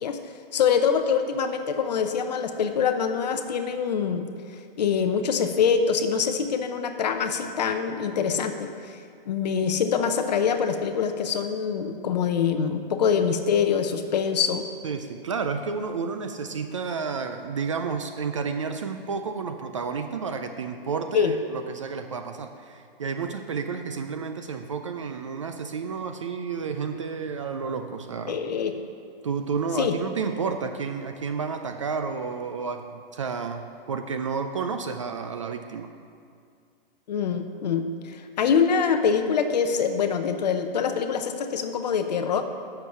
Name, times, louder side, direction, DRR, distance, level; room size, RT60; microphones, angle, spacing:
voice 1, 0.5-4.2 4.8-8.7 9.3-14.6 21.1-21.3 28.3-28.7 29.8-29.9 37.1-42.4, left 6 dB, 45° left, 7 dB, 0.7 m, -24 dB
voice 2, 14.8-28.4 29.2-35.9, right 5 dB, 35° right, 7 dB, 0.4 m, -31 dB
7.6 x 6.6 x 6.9 m, 2.2 s
hypercardioid pair, 160°, 29 cm